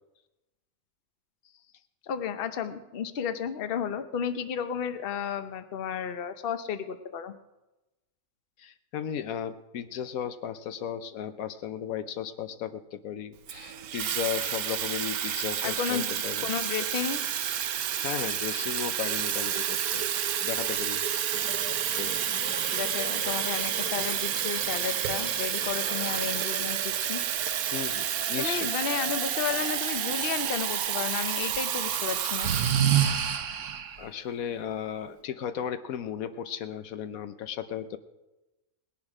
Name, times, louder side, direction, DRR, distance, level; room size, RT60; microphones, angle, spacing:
voice 1, 2.0-7.3 15.6-17.2 22.7-27.2 28.4-32.5, left 8 dB, 50° left, 10 dB, 0.9 m, -33 dB
voice 2, 8.6-16.5 18.0-20.1 20.4-21.0 21.9-22.2 27.7-28.7 34.0-38.0, left 9 dB, 75° left, 11 dB, 1.1 m, -35 dB
Water tap faucet / Fill (with liquid), 13.5-33.2, right 10 dB, 85° right, 1.2 m, -30 dB
sound 1, 21.3-26.4, left 2 dB, 20° left, 0.3 m, -44 dB
Breathing, 30.4-31.6 32.4-34.0, right 9 dB, 65° right, 1.1 m, -27 dB
19.5 x 10.5 x 4.9 m, 1.0 s
omnidirectional pair, 1.5 m